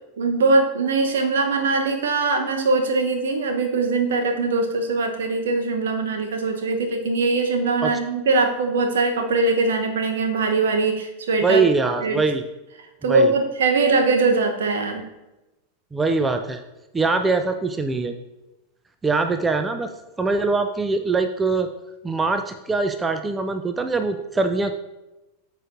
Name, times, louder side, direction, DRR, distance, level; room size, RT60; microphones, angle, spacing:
voice 1, 0.2-11.6 12.0-12.2 13.0-15.0, right 3 dB, 65° right, 4 dB, 1.0 m, -21 dB
voice 2, 11.4-12.4 13.1-13.3 15.9-16.6 16.9-18.2 19.0-19.9 20.2-21.7 22.0-24.7, right 3 dB, 15° right, 7 dB, 0.5 m, -22 dB
13.0 x 4.9 x 2.6 m, 1.0 s
figure-of-eight pair, 90°, 0 cm